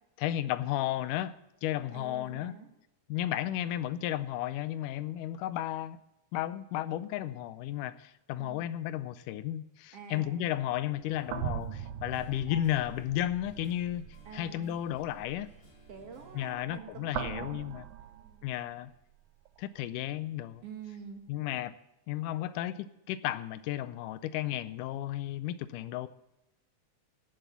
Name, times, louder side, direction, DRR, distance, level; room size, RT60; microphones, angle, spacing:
voice 1, 0.2-1.4 1.6-2.5 3.1-6.0 6.3-14.0 14.3-15.5 16.4-17.9 18.4-18.9 19.6-20.6 21.3-21.7 22.1-26.1, left 13 dB, 85° left, 14 dB, 2.2 m, -33 dB
voice 2, 1.9-2.7 8.4-8.7 9.9-10.4 14.3-14.8 15.9-17.1 18.0-18.5 20.6-21.3, right 6 dB, 55° right, 4 dB, 2.5 m, -47 dB
sound 1, 10.5-18.9 19.5-19.6 21.6-21.7, right 10 dB, 75° right, 1.9 m, -42 dB
sound 2, 11.0-16.4, equal, 45° left, 6.0 m, -57 dB
18.0 x 7.5 x 7.0 m, 0.89 s
omnidirectional pair, 3.6 m